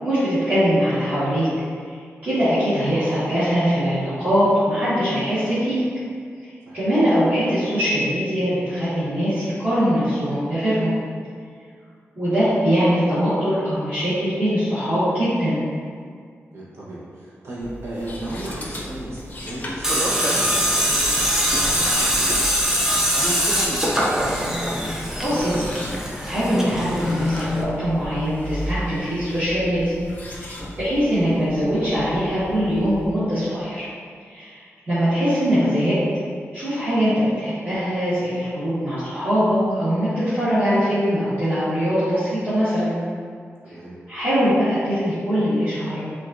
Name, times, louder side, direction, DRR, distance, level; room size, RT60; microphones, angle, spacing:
voice 1, 0.0-1.5 2.2-5.8 6.7-10.9 12.1-15.6 24.8-25.8 26.2-29.9 30.3-33.8 34.3-35.9 36.5-42.9 44.1-46.0, equal, 35° right, -16 dB, 1.5 m, -22 dB
voice 2, 16.5-22.6 22.9-24.0 43.6-43.9, right 1 dB, 65° right, -8 dB, 1.0 m, -34 dB
sound 1, 17.6-33.1, equal, 35° left, 0.6 m, -36 dB
Tools, 19.8-27.6, equal, 10° right, 0.5 m, -22 dB
7.3 x 2.5 x 2.5 m, 2.1 s
wide cardioid pair, 160°, 5 cm